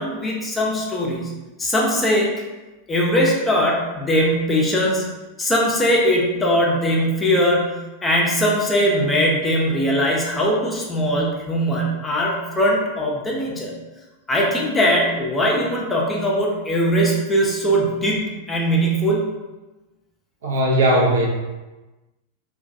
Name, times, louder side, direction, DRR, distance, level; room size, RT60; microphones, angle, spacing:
voice 1, 0.0-1.3 1.6-2.3 2.9-5.0 5.4-7.8 8.0-13.7 14.3-19.2, equal, 15° left, -3 dB, 0.5 m, -20 dB
voice 2, 20.4-21.3, right 1 dB, 60° right, -2 dB, 0.5 m, -18 dB
2.2 x 2.2 x 2.6 m, 1.1 s
figure-of-eight pair, 90°, 0 cm